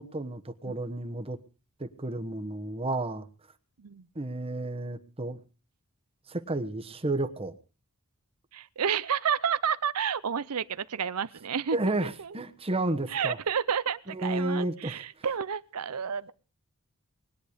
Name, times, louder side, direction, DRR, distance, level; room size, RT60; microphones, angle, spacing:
voice 1, 0.0-1.4 1.8-3.3 4.1-5.4 6.3-7.5 11.7-13.4 14.1-15.0, right 2 dB, 25° right, 9 dB, 1.1 m, -31 dB
voice 2, 8.5-11.8 12.2-12.4 13.1-16.3, right 7 dB, 85° right, 16 dB, 0.7 m, -30 dB
20.5 x 10.0 x 5.0 m, 0.36 s
head